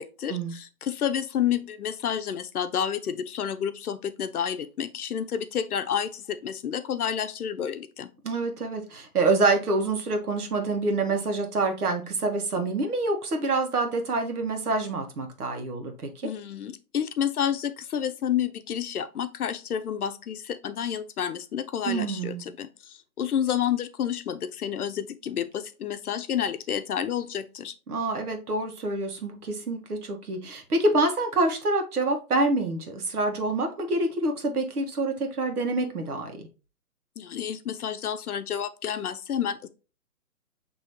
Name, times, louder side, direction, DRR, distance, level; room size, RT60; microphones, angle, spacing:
voice 1, 0.0-8.1 16.2-27.7 37.2-39.7, left 9 dB, 75° left, 0.7 m, -30 dB
voice 2, 8.2-16.1 21.8-22.5 27.9-36.4, right 2 dB, 85° right, 1.3 m, -26 dB
6.2 x 3.0 x 2.7 m
hypercardioid pair, 155°, 44 cm